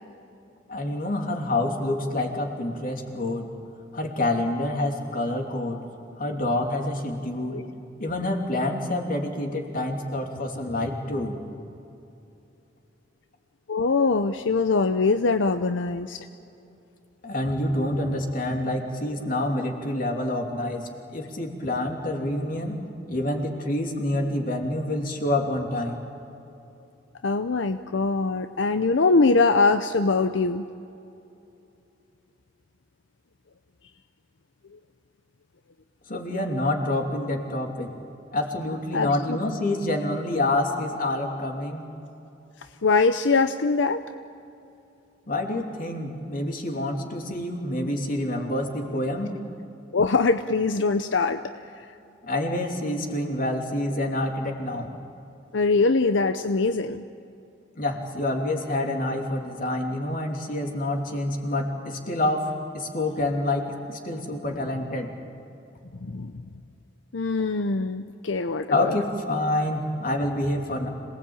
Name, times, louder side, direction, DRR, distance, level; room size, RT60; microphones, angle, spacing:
voice 1, 0.7-3.5 3.9-5.8 6.2-7.6 8.0-11.4 17.2-22.8 23.1-26.1 36.1-37.9 38.3-41.9 45.3-49.3 52.2-54.9 57.7-65.1 68.7-70.9, left 1 dB, 50° left, 3 dB, 3.0 m, -27 dB
voice 2, 13.7-16.3 27.2-30.6 38.9-39.4 42.8-44.0 49.9-51.9 55.5-57.0 65.9-66.3 67.1-68.9, left 3 dB, 80° left, 9 dB, 0.7 m, -23 dB
27.0 x 19.0 x 8.9 m, 2.8 s
head